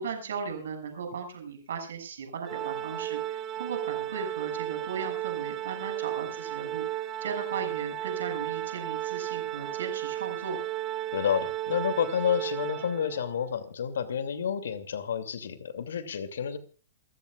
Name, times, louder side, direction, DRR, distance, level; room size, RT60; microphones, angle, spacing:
voice 1, 0.0-10.6, right 6 dB, 75° right, 5 dB, 6.9 m, -37 dB
Organ, 2.5-13.3, right 13 dB, 30° right, 1.6 m, -34 dB
voice 2, 11.1-16.6, left 8 dB, 75° left, 10 dB, 2.7 m, -30 dB
28.0 x 12.0 x 2.4 m, 0.36 s
hypercardioid pair, 125°, 0 cm